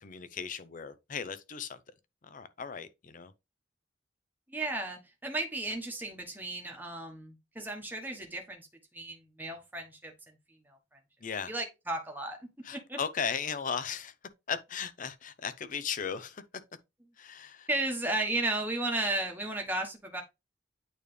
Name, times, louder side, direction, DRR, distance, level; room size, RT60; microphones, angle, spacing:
voice 1, 0.0-1.8 2.2-3.3 11.2-11.5 12.6-14.1 14.5-16.4 17.2-17.7, left 6 dB, 45° left, 0.6 m, -36 dB
voice 2, 4.5-8.7 8.9-10.3 10.7-10.8 11.5-12.4 12.9-13.0 17.7-20.2, right 2 dB, 10° right, 1.2 m, -34 dB
8.9 x 3.3 x 3.3 m
head